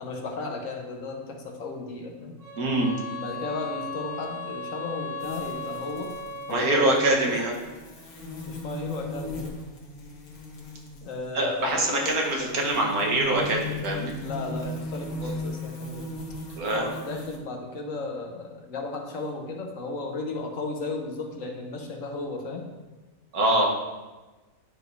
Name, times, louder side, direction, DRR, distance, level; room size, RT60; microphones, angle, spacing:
voice 1, 0.0-2.3 3.2-6.1 6.5-7.4 8.5-9.6 11.0-12.2 14.2-16.1 16.7-22.6, left 3 dB, 70° left, 2 dB, 1.3 m, -34 dB
sound 1, 2.4-7.2, left 3 dB, 25° right, 1.7 m, -37 dB
voice 2, 2.6-2.9 6.5-7.5 11.3-14.1 16.6-16.9 23.3-23.7, right 2 dB, 90° right, 0 dB, 1.7 m, -24 dB
sound 2, 5.2-17.4, left 1 dB, 85° left, 1.6 m, -38 dB
10.5 x 4.8 x 2.6 m, 1.2 s
omnidirectional pair, 1.5 m